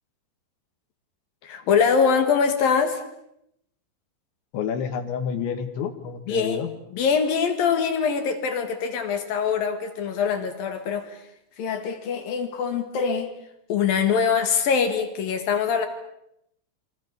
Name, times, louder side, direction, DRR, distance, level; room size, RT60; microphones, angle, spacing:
voice 1, 1.4-3.0 6.3-6.6 6.9-11.2 11.6-13.3 13.7-15.9, left 6 dB, 60° left, 7 dB, 3.4 m, -23 dB
voice 2, 4.5-6.7, left 7 dB, 90° left, 8 dB, 4.2 m, -29 dB
27.5 x 25.0 x 7.0 m, 0.78 s
omnidirectional pair, 5.1 m